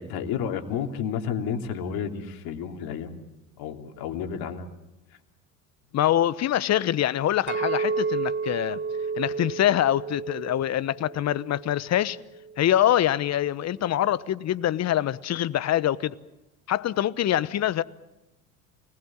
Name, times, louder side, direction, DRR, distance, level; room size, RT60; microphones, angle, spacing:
voice 1, 0.0-3.1 3.6-4.7, left 7 dB, 55° left, 3.2 m, -31 dB
voice 2, 5.9-8.8 9.2-12.2 12.6-16.2 16.7-17.8, left 12 dB, 40° left, 1.0 m, -24 dB
Chink clink, 7.5-11.8 12.3-12.7, right 5 dB, 25° right, 1.2 m, -31 dB
29.0 x 20.0 x 7.4 m
hypercardioid pair, 70°, 43 cm